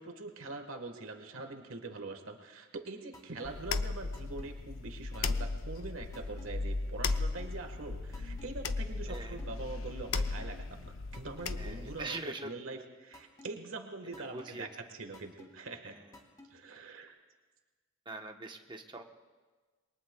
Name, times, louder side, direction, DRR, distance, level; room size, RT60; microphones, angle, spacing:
voice 1, 0.0-16.0 16.5-17.2, right 3 dB, 75° right, 5 dB, 1.4 m, -44 dB
sound 1, 3.1-3.5 4.1-4.5 5.1-5.5 6.1-6.5 7.1-7.5 8.1-8.5 9.1-9.5 10.1-10.5 11.1-11.5 12.1-12.5 13.1-13.5 14.1-14.5 15.1-15.5 16.1-16.5, left 2 dB, 15° left, 2.0 m, -52 dB
sound 2, 3.4-12.0, left 3 dB, 70° left, 0.6 m, -36 dB
voice 2, 9.1-9.4 11.6-12.8 14.2-14.7 15.8-16.2 18.1-19.1, right 2 dB, 20° right, 4 dB, 1.0 m, -43 dB
27.5 x 22.0 x 2.3 m, 1.4 s
head